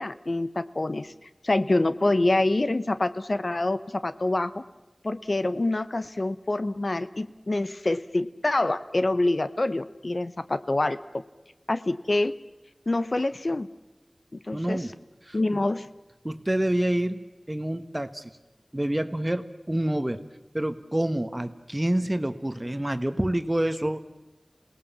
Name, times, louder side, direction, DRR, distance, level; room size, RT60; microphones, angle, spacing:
voice 1, 0.0-4.6 5.0-11.2 11.7-12.4 12.9-13.7 14.3-14.9 15.3-15.9, left 2 dB, 65° left, 12 dB, 0.8 m, -26 dB
voice 2, 14.5-14.9 15.3-15.4 16.2-17.2 17.5-18.3 18.7-20.2 20.5-24.0, right 1 dB, 25° right, 10 dB, 1.3 m, -27 dB
27.5 x 18.5 x 7.3 m, 1.1 s
wide cardioid pair, 45°, 0 cm